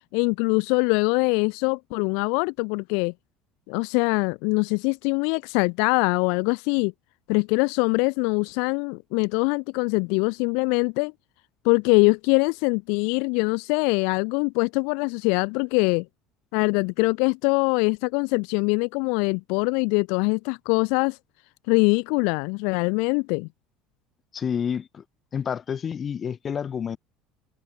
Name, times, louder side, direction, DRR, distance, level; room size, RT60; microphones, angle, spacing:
voice 1, 0.1-3.1 3.7-6.9 7.3-11.1 11.6-16.0 16.5-21.2 21.7-23.5, left 37 dB, 75° left, 1.6 m, -23 dB
voice 2, 24.3-25.0 25.3-27.0, left 7 dB, 35° left, 2.5 m, -29 dB
supercardioid pair, 95°, 0 cm